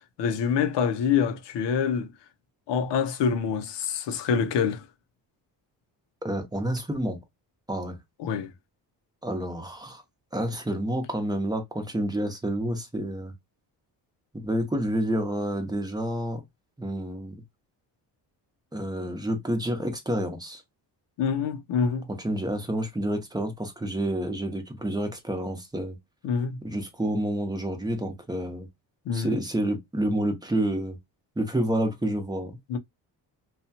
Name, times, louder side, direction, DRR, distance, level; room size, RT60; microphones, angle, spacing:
voice 1, 0.2-2.1 2.7-4.8 8.2-8.5 21.2-22.1 26.2-26.6 29.1-29.3 32.7-32.8, left 6 dB, 80° left, 0.7 m, -26 dB
voice 2, 6.2-7.2 7.7-8.0 9.2-10.0 10.3-13.3 14.3-16.4 16.8-17.4 18.7-20.6 22.1-26.0 26.6-28.7 29.1-31.0 31.4-32.6, right 1 dB, 10° right, 0.8 m, -29 dB
2.8 x 2.3 x 2.7 m
cardioid pair, 105°, 41 cm